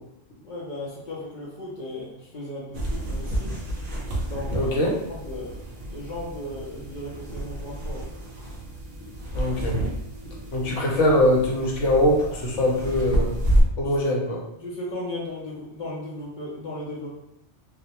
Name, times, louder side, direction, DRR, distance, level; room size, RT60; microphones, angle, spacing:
voice 1, 0.4-3.5 4.2-4.7 5.1-8.0 12.9-13.0 14.3-17.1, left 1 dB, 50° left, -5 dB, 0.6 m, -36 dB
sound 1, 2.7-13.6, right 1 dB, 60° right, 0.4 m, -30 dB
voice 2, 4.5-4.9 9.3-9.7 10.5-13.3 13.8-14.4, left 1 dB, 80° left, -3 dB, 1.0 m, -22 dB
2.4 x 2.1 x 2.8 m, 0.81 s
omnidirectional pair, 1.2 m